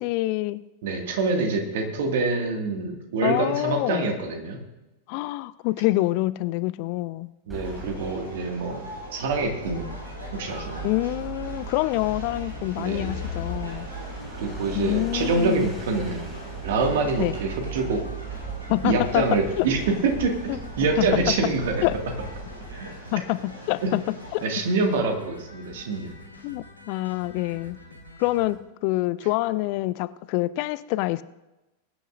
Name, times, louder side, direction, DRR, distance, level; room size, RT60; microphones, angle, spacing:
voice 1, 0.0-0.6 3.2-4.1 5.1-7.3 10.8-13.9 14.7-15.6 17.2-17.4 18.7-19.7 20.5-20.6 21.0-21.1 21.8-21.9 23.1-24.4 26.4-27.8 28.2-31.2, left 19 dB, 45° left, 17 dB, 0.4 m, -26 dB
voice 2, 0.8-4.6 7.5-10.0 10.3-10.9 12.8-13.2 14.4-16.3 16.6-18.0 18.8-21.9 24.4-26.1, right 3 dB, 55° right, 3 dB, 2.0 m, -26 dB
sound 1, 7.5-23.0, right 2 dB, 5° right, 3.2 m, -38 dB
sound 2, 7.6-24.5, equal, 80° right, 4.0 m, -43 dB
sound 3, 9.5-28.5, equal, 90° left, 3.1 m, -46 dB
21.5 x 10.0 x 2.6 m, 1.0 s
figure-of-eight pair, 90°, 0 cm